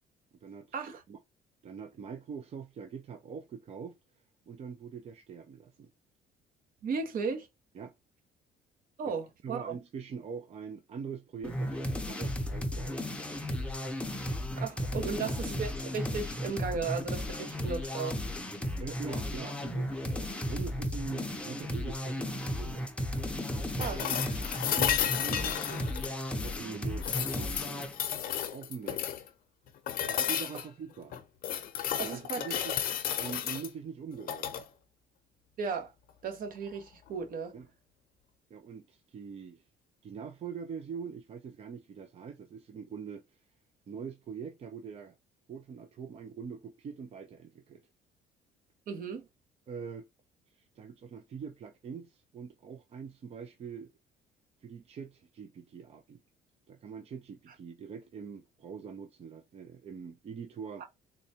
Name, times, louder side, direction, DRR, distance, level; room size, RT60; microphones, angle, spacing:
voice 1, 0.4-1.2 1.6-4.0 4.5-5.9 7.7-7.9 9.1-9.2 9.4-13.0 14.9-15.6 18.8-22.9 23.5-24.3 24.7-26.0 26.4-27.9 28.5-29.2 30.1-31.2 32.0-32.8 33.2-34.5 37.5-37.7 38.5-39.6 40.0-43.2 43.9-45.1 45.5-47.8 49.7-50.1 50.5-53.9 54.6-56.2 56.7-60.8, right 6 dB, 40° right, 0.5 m, -43 dB
voice 2, 6.8-7.5 9.0-9.8 14.6-18.2 23.8-24.2 32.0-32.4 35.6-35.9 36.2-37.5 48.9-49.3 60.8-60.9, right 5 dB, 55° right, 0.9 m, -35 dB
sound 1, 11.4-28.0, left 1 dB, 5° left, 0.6 m, -35 dB
sound 2, 23.8-26.6 27.0-29.3 29.9-30.7 31.1-33.7 34.2-34.6 36.7-36.8, left 10 dB, 60° left, 0.7 m, -33 dB
3.9 x 2.2 x 2.8 m
cardioid pair, 110°, 17 cm